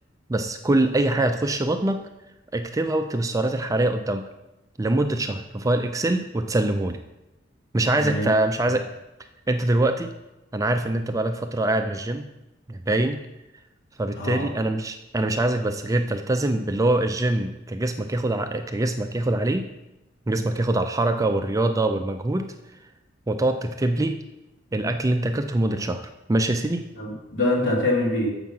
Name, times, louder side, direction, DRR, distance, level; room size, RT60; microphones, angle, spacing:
voice 1, 0.3-2.0 2.5-4.3 4.8-7.0 7.7-8.9 9.5-10.1 10.5-12.3 12.7-13.2 14.0-19.7 20.3-22.5 23.3-24.2 24.7-26.8, right 2 dB, 15° right, 6 dB, 0.4 m, -24 dB
voice 2, 8.0-8.3 14.2-14.4 27.0-28.3, left 1 dB, 65° left, -3 dB, 2.5 m, -24 dB
7.4 x 5.8 x 5.4 m, 0.96 s
head